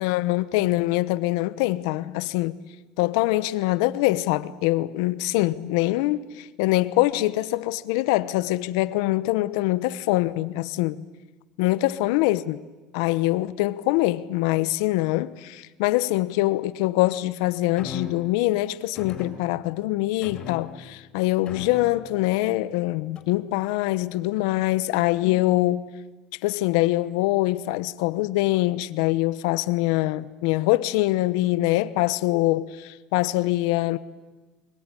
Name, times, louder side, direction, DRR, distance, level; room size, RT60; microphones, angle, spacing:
voice 1, 0.0-2.6 3.0-11.0 11.6-12.6 12.9-25.9 26.4-34.0, left 17 dB, 85° left, 1.0 m, -24 dB
sound 1, 17.8-18.3 18.9-19.8 20.2-21.0 21.4-22.2 23.1-23.5, left 6 dB, 35° left, 4.6 m, -39 dB
24.0 x 22.0 x 10.0 m
cardioid pair, 150°, 3 cm